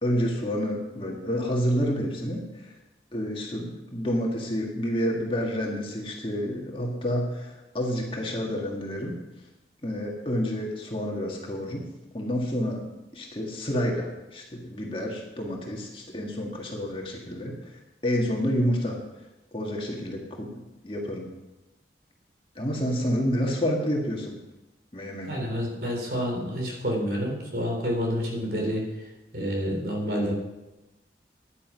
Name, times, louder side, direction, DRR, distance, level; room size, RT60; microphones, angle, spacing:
voice 1, 0.0-2.7 3.1-9.2 9.8-11.9 12.1-12.8 13.1-17.6 18.0-19.0 19.5-21.3 22.6-24.4 24.9-25.3, equal, 30° left, -1 dB, 1.8 m, -29 dB
voice 2, 25.3-28.9 29.3-30.3, equal, 60° right, 0 dB, 3.8 m, -28 dB
10.0 x 10.0 x 6.2 m, 0.99 s
head